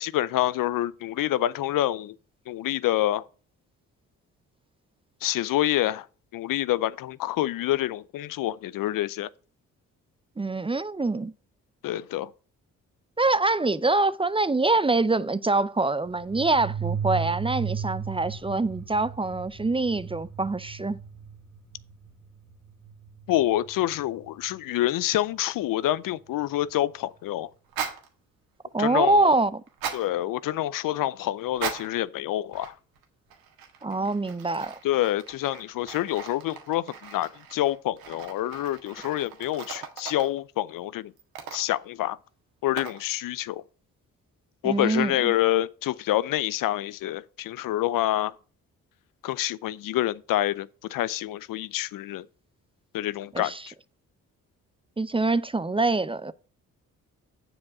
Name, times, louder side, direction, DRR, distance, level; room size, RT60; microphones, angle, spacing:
voice 1, 0.0-2.2 2.5-3.2 5.2-6.1 6.3-9.3 11.8-12.3 23.3-27.5 28.8-29.3 29.9-32.7 34.8-41.1 41.5-42.2 42.6-43.6 44.6-48.3 49.2-52.3 52.9-53.7, left 14 dB, 65° left, 0.5 m, -27 dB
voice 2, 10.4-11.3 13.2-21.0 28.7-29.6 33.8-34.8 44.6-45.3 53.3-53.6 55.0-56.3, right 3 dB, 15° right, 0.5 m, -25 dB
sound 1, 16.0-24.4, right 7 dB, 5° left, 1.6 m, -36 dB
sound 2, 27.7-28.1 29.7-30.1 31.5-32.0 32.5-33.0 33.3-40.4 41.2-41.9 42.8-43.1, right 7 dB, 80° right, 1.6 m, -38 dB
7.2 x 5.0 x 7.2 m
supercardioid pair, 55°, 35 cm